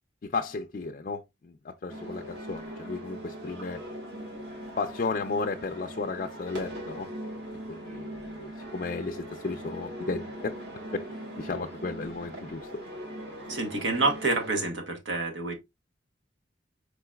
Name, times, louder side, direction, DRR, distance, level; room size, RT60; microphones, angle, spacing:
voice 1, 0.2-3.8 4.8-7.1 7.7-10.5 10.9-11.1 11.4-12.8, left 3 dB, 45° left, 0.4 m, -34 dB
sound 1, 1.9-14.7, right 1 dB, 60° right, 1.8 m, -41 dB
voice 2, 13.5-15.5, right 3 dB, 80° right, 1.2 m, -28 dB
4.9 x 3.8 x 2.2 m
head